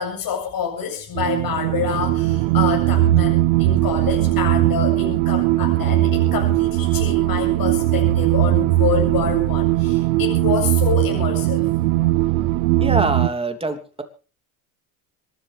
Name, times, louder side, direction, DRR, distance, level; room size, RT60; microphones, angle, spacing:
voice 1, 0.0-11.6, left 7 dB, 50° left, 1 dB, 7.7 m, -27 dB
sound 1, 1.2-13.3, right 15 dB, 85° right, 0.9 m, -19 dB
voice 2, 12.8-14.0, right 2 dB, 15° right, 6 dB, 3.1 m, -24 dB
26.5 x 12.5 x 3.5 m, 0.36 s
supercardioid pair, 95°, 44 cm